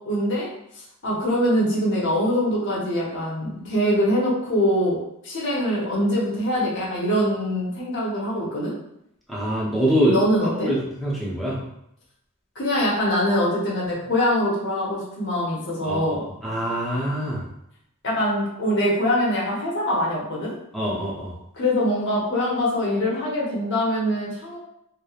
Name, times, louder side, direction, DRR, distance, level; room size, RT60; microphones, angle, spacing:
voice 1, 0.1-0.5 1.0-5.0 5.2-8.8 10.1-10.7 12.6-16.2 18.0-20.5 21.5-24.6, equal, 55° left, -6 dB, 0.7 m, -23 dB
voice 2, 9.3-10.2 10.6-11.6 15.8-17.5 20.7-21.4, right 1 dB, ahead, -7 dB, 0.6 m, -24 dB
2.9 x 2.1 x 2.3 m, 0.78 s
head